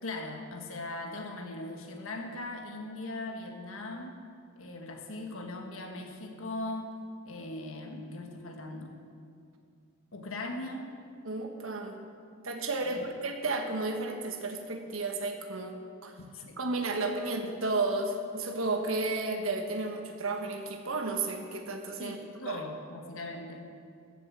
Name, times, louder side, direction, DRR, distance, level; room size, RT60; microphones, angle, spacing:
voice 1, 0.0-4.2 4.5-6.9 7.2-9.0 10.1-10.9 12.8-13.1 16.3-16.6 22.0-23.8, left 2 dB, 80° left, 3 dB, 1.6 m, -39 dB
voice 2, 11.2-12.0 12.4-16.1 16.6-22.2 22.5-22.6, right 3 dB, 80° right, 4 dB, 1.4 m, -32 dB
14.5 x 7.2 x 7.4 m, 2.3 s
head